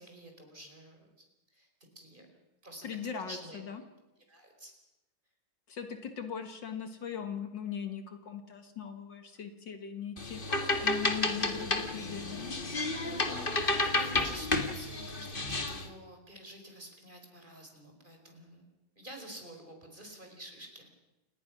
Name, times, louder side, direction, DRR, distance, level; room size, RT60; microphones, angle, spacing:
voice 1, 0.0-1.7 1.9-2.3 2.6-2.9 3.3-3.6 4.3-4.7 12.9-18.7 18.9-20.9, equal, 25° right, 3 dB, 4.9 m, -49 dB
voice 2, 2.8-3.8 5.7-12.5, left 7 dB, 65° left, 7 dB, 2.3 m, -40 dB
sound 1, 10.2-15.9, left 2 dB, 25° left, 1.9 m, -31 dB
29.0 x 19.5 x 6.1 m, 0.97 s
omnidirectional pair, 2.2 m